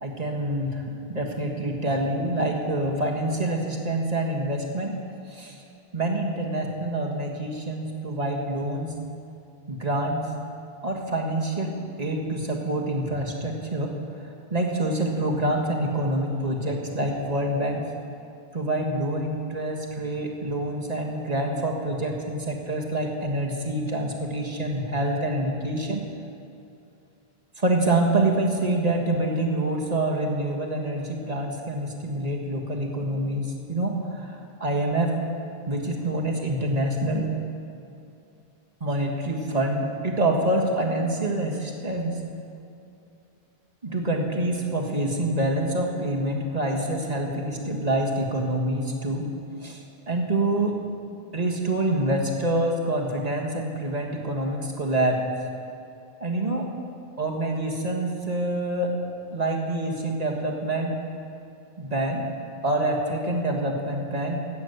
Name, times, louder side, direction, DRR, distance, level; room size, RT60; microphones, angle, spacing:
voice 1, 0.0-4.9 5.3-5.6 5.9-8.9 9.7-10.2 10.8-14.0 14.5-17.9 18.5-26.0 27.6-35.1 35.7-37.3 38.8-42.1 43.8-49.3 49.6-50.8 51.3-55.2 56.2-56.7 57.2-59.0 59.3-61.0 61.8-62.2 62.6-64.4, right 1 dB, 40° right, 0 dB, 1.7 m, -26 dB
13.5 x 9.0 x 8.0 m, 2.6 s
omnidirectional pair, 1.1 m